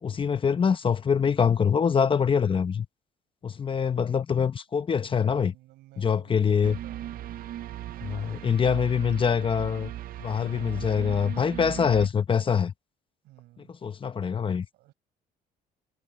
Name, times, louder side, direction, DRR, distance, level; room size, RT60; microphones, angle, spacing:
voice 1, 0.0-2.9 3.4-5.5 6.0-6.8 8.1-9.9 10.2-12.7 13.6-14.7, left 6 dB, 30° left, 1.0 m, -24 dB
voice 2, 5.0-7.2 7.9-9.3 10.5-11.0 13.2-13.8 14.7-14.9, right 17 dB, 85° right, 7.8 m, -54 dB
sound 1, 6.6-12.1, right 12 dB, 60° right, 0.7 m, -38 dB
cardioid pair, 110°, 17 cm